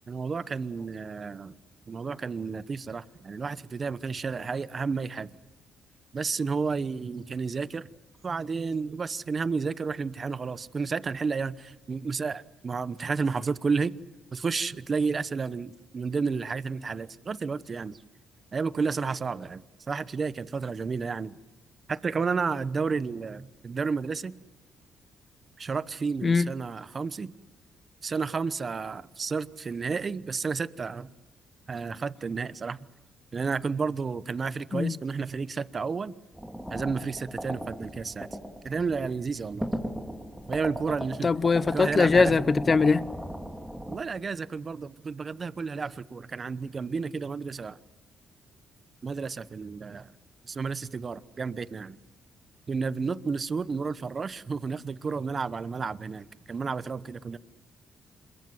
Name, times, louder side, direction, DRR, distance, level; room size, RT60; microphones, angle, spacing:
voice 1, 0.1-1.6 1.9-5.3 6.1-7.9 8.2-14.0 14.3-18.0 18.5-19.6 19.9-21.4 21.9-24.3 25.6-27.3 28.0-31.1 31.7-32.9 33.3-36.1 36.7-38.3 38.6-39.7 40.5-41.3 41.7-42.5 43.9-47.8 49.0-50.1 50.4-52.0 52.7-57.4, right 5 dB, 40° right, 1.0 m, -31 dB
voice 2, 26.2-26.5 34.7-34.9 41.2-43.1, left 4 dB, 35° left, 0.9 m, -22 dB
sound 1, 36.3-44.0, equal, 5° right, 2.6 m, -36 dB
27.0 x 22.0 x 7.9 m
cardioid pair, 90°, 0 cm